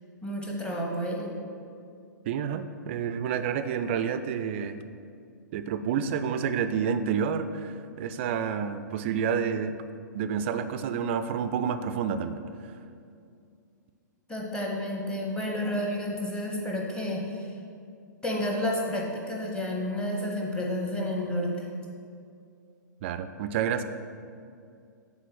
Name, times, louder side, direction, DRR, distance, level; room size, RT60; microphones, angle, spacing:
voice 1, 0.2-1.3 14.3-17.6 18.2-21.7, left 1 dB, 10° left, -1 dB, 0.9 m, -30 dB
voice 2, 2.3-4.8 5.5-9.8 10.1-12.4 23.0-23.8, right 7 dB, 35° right, 10 dB, 0.3 m, -29 dB
6.6 x 3.6 x 6.2 m, 2.4 s
figure-of-eight pair, 110°, 10 cm